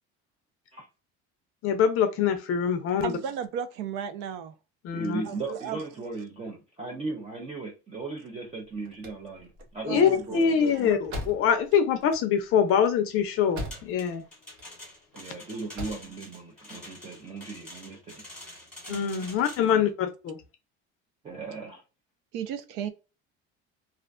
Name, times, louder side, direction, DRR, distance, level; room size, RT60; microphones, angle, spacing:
voice 1, 1.6-3.1 4.8-5.2 9.9-14.2 18.9-20.4, left 7 dB, 45° left, 0.4 m, -24 dB
voice 2, 3.0-4.5 5.2-5.8 9.9-10.6 18.9-19.3 22.3-22.9, right 8 dB, 90° right, 0.6 m, -35 dB
voice 3, 4.9-11.0 15.2-18.3 19.6-19.8 21.2-21.8, right 3 dB, 20° right, 0.4 m, -37 dB
sound 1, 8.8-14.2 14.4-15.2 15.5-16.1, left 1 dB, 60° right, 0.8 m, -40 dB
sound 2, 13.7-19.8, left 1 dB, 5° left, 1.1 m, -46 dB
2.4 x 2.1 x 2.3 m
cardioid pair, 165°, 30 cm